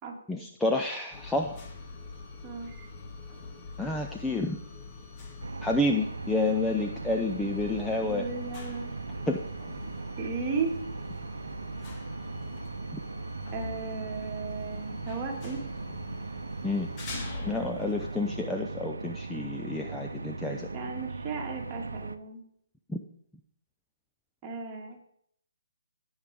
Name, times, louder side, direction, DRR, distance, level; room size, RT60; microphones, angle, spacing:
voice 1, 0.3-1.6 3.8-4.6 5.6-8.2 9.3-9.4 16.6-16.9 17.5-20.7 22.9-23.0, left 2 dB, 5° left, 2 dB, 0.6 m, -29 dB
sound 1, 1.1-18.4, left 4 dB, 25° left, 1.8 m, -45 dB
voice 2, 2.4-2.9 8.0-8.9 10.2-10.8 13.5-15.6 20.7-22.4 24.4-25.0, right 4 dB, 20° right, -1 dB, 2.2 m, -35 dB
sound 2, 5.4-22.2, right 3 dB, 75° right, 0.7 m, -38 dB
16.5 x 6.4 x 3.6 m, 0.68 s
figure-of-eight pair, 135°, 0 cm